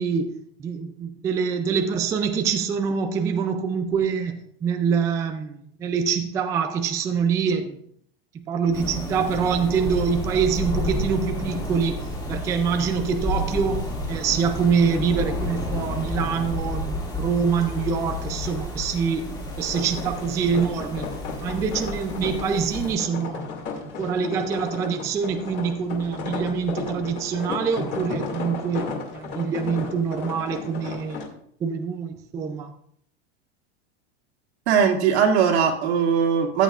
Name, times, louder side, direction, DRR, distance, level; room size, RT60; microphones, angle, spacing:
voice 1, 0.0-7.8 8.3-19.3 19.6-21.1 21.4-23.5 24.0-31.2 31.6-32.7, right 6 dB, 10° right, 6 dB, 0.3 m, -25 dB
sound 1, 8.7-22.9, left 1 dB, 10° left, 2.3 m, -31 dB
sound 2, 19.6-31.3, left 5 dB, 35° left, 2.2 m, -34 dB
voice 2, 34.7-36.6, right 7 dB, 85° right, 1 dB, 2.3 m, -20 dB
14.0 x 9.1 x 2.4 m, 0.66 s
supercardioid pair, 160°, 33 cm